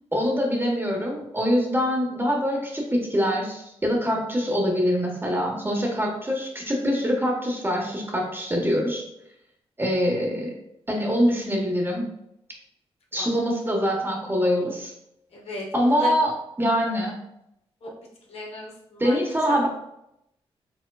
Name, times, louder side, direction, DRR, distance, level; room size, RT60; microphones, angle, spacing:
voice 1, 0.1-9.0 9.8-10.5 10.9-12.0 13.1-14.9 15.7-16.3 16.6-17.2 19.0-19.7, equal, 20° right, -1 dB, 1.4 m, -24 dB
voice 2, 15.3-16.1 17.8-17.9 18.3-19.2 19.5-19.6, left 2 dB, 65° left, -2 dB, 1.3 m, -35 dB
5.1 x 3.6 x 2.4 m, 0.80 s
cardioid pair, 65°, 11 cm